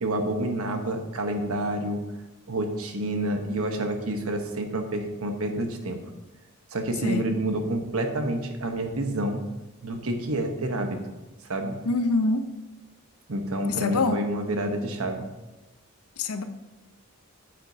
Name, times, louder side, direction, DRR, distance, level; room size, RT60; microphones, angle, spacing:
voice 1, 0.0-2.0 2.5-6.0 6.7-9.4 9.8-11.0 11.5-11.8 13.3-15.3, right 1 dB, 75° right, 5 dB, 1.1 m, -28 dB
voice 2, 11.9-12.5 13.7-14.2 16.2-16.4, left 3 dB, 90° left, 9 dB, 0.7 m, -25 dB
9.0 x 7.7 x 2.8 m, 1.0 s
head